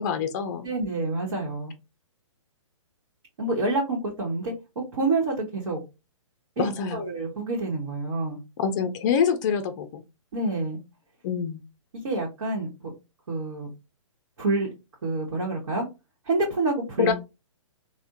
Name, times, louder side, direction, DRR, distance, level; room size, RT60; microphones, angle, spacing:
voice 1, 0.0-0.7 6.6-7.0 8.6-10.0 11.2-11.6 17.0-17.1, left 7 dB, 35° left, 7 dB, 0.4 m, -25 dB
voice 2, 0.6-1.7 3.4-4.5 4.9-5.8 6.6-8.4 10.3-10.8 12.0-12.7 13.3-13.7 14.4-14.7 15.0-15.9 16.2-17.1, right 2 dB, 60° right, -2 dB, 1.1 m, -27 dB
3.3 x 2.0 x 2.6 m, 0.26 s
hypercardioid pair, 130°, 17 cm